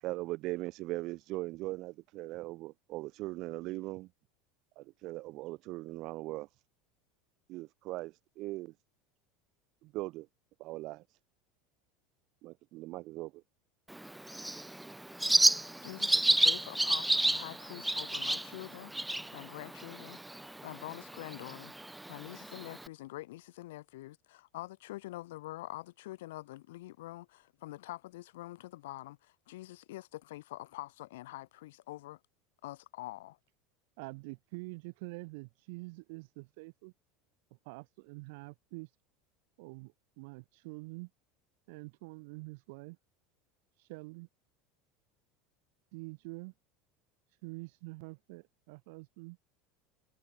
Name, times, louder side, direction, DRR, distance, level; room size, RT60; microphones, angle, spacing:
voice 1, 0.0-4.1 4.8-6.5 7.5-8.7 9.8-10.3 10.6-11.2 12.4-13.4, right 19 dB, 50° right, 0.7 m, -40 dB
Bird, 13.9-22.9, right 1 dB, 5° right, 0.4 m, -31 dB
voice 2, 15.8-21.7 22.1-32.2 32.6-33.4, left 17 dB, 90° left, 2.7 m, -46 dB
voice 3, 34.0-36.9 37.6-38.9 39.6-41.1 41.7-43.0 43.8-44.3 45.9-46.5 47.4-49.4, right 27 dB, 70° right, 6.3 m, -46 dB
supercardioid pair, 140°, 0 cm